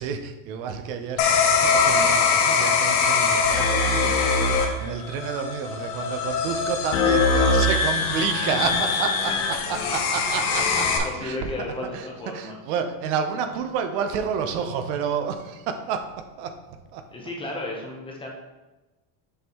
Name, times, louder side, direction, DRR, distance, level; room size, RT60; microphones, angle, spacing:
voice 1, 0.0-9.3 9.7-11.4 11.9-12.1 12.3-16.1 16.4-16.6 16.9-17.0, right 7 dB, 70° right, 7 dB, 0.8 m, -30 dB
sound 1, 1.2-11.0, left 4 dB, 85° left, 1.2 m, -22 dB
voice 2, 10.6-12.6 17.1-18.3, left 2 dB, 10° left, -1 dB, 0.7 m, -34 dB
6.8 x 5.4 x 3.0 m, 1.1 s
cardioid pair, 165°, 43 cm